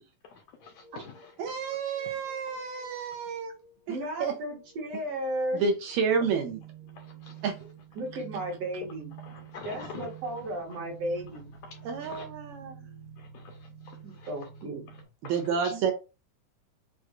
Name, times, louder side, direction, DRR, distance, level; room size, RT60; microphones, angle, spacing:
voice 1, 0.2-1.6 7.0-7.4 9.2-10.1 11.7-12.3 13.2-14.3 14.9-15.3, left 5 dB, 75° left, 1.7 m, -47 dB
sound 1, 0.6-15.1, right 8 dB, 45° right, 1.3 m, -50 dB
voice 2, 1.4-3.5 3.9-4.3 5.5-6.6 7.4-7.5 11.9-12.8 15.3-15.9, right 6 dB, 75° right, 1.8 m, -29 dB
voice 3, 3.9-5.6 8.0-9.1 9.7-11.5 14.0-14.8 15.7-15.8, right 1 dB, 60° right, 2.0 m, -34 dB
6.3 x 2.3 x 2.4 m
omnidirectional pair, 3.7 m